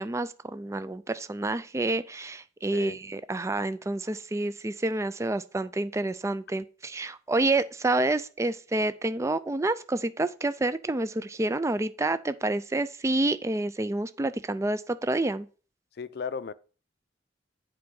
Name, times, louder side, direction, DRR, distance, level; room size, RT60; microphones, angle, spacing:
voice 1, 0.0-15.5, right 2 dB, 15° right, 0.4 m, -28 dB
voice 2, 16.0-16.5, left 5 dB, 60° left, 0.5 m, -35 dB
7.8 x 4.7 x 5.3 m
head